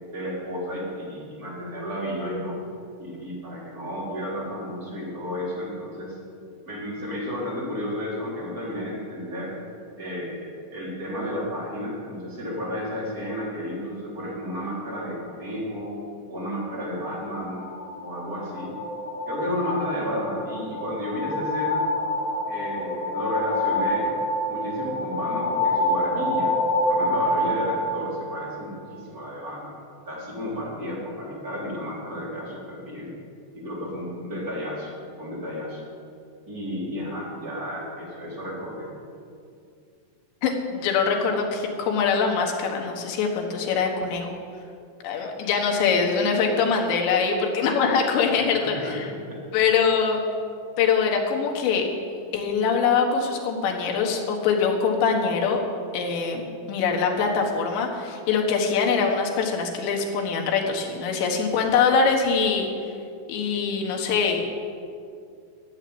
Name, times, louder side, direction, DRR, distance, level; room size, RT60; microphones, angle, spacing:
voice 1, 0.1-2.6 3.0-6.2 6.6-9.5 10.0-15.9 16.3-17.7 18.0-18.7 19.3-21.8 22.5-24.2 24.5-26.6 26.8-29.8 30.1-33.2 33.5-34.9 35.2-35.8 36.5-38.9 48.2-49.4, equal, 20° right, -6 dB, 3.5 m, -32 dB
sound 1, 17.2-28.9, left 1 dB, 50° left, 4.4 m, -27 dB
voice 2, 40.4-44.4 45.0-49.1 49.5-50.2 50.8-51.9 52.3-55.6 55.9-62.7 63.3-64.4, left 5 dB, 75° left, 1 dB, 3.6 m, -23 dB
13.0 x 7.3 x 9.4 m, 2.4 s
omnidirectional pair, 5.2 m